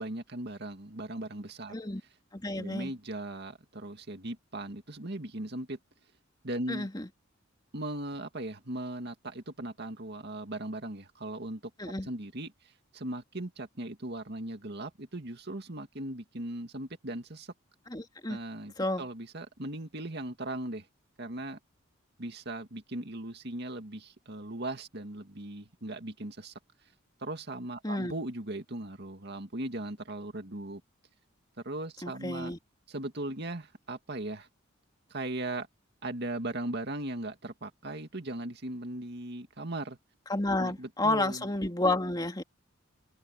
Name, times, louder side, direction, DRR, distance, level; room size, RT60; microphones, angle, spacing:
voice 1, 0.0-1.7 2.6-5.8 6.4-6.9 7.7-11.6 12.1-17.5 18.3-20.9 21.2-21.6 22.2-26.5 27.2-30.8 31.6-32.5 32.9-34.5 35.1-35.7 36.0-40.0 40.6-41.4, right 1 dB, 55° right, 2.2 m, -38 dB
voice 2, 1.7-2.0 2.3-2.9 6.7-7.1 11.8-12.1 17.9-18.4 18.8-19.0 27.8-28.1 32.0-32.6 40.3-42.4, left 2 dB, 20° left, 2.7 m, -31 dB
head